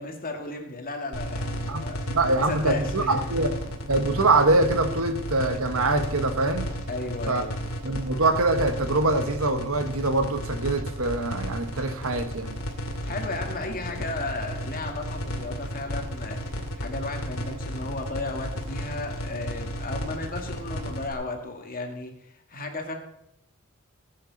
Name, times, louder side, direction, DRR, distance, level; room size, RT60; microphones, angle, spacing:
voice 1, 0.0-3.2 6.9-7.6 12.8-22.9, left 2 dB, 40° left, 3 dB, 2.3 m, -35 dB
sound 1, 1.1-21.1, equal, 85° left, 2.5 m, -33 dB
voice 2, 2.1-3.6 3.9-6.7 7.3-7.4 7.8-12.6, right 2 dB, 70° right, 8 dB, 1.5 m, -24 dB
18.5 x 9.1 x 4.2 m, 0.78 s
head